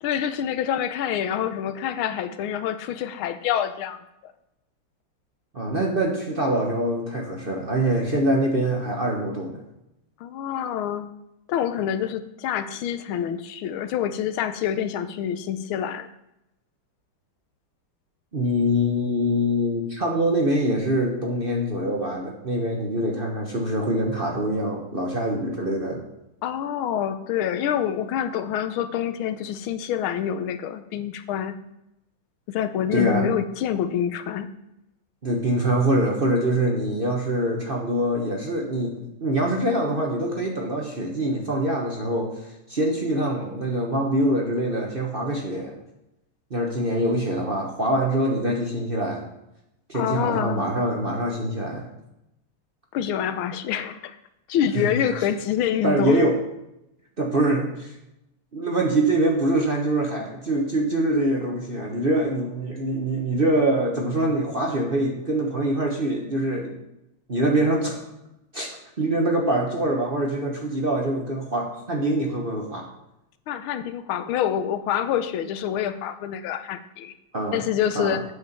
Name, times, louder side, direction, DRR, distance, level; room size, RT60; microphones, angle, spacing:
voice 1, 0.0-4.3 10.2-11.1 11.5-16.1 26.4-31.6 32.5-34.5 49.9-50.7 52.9-54.1 54.5-56.2 73.5-77.1 77.5-78.2, left 9 dB, 85° left, 11 dB, 1.5 m, -26 dB
voice 2, 5.5-9.6 18.3-26.0 32.9-33.3 35.2-38.9 39.2-42.3 42.7-45.7 46.5-49.3 49.9-51.9 54.7-54.9 55.8-56.3 57.2-57.9 58.5-66.8 67.3-68.0 68.5-68.7 69.0-72.9 77.3-77.6 77.9-78.2, right 1 dB, 35° right, 0 dB, 1.0 m, -24 dB
8.4 x 5.3 x 6.7 m, 0.85 s
omnidirectional pair, 2.3 m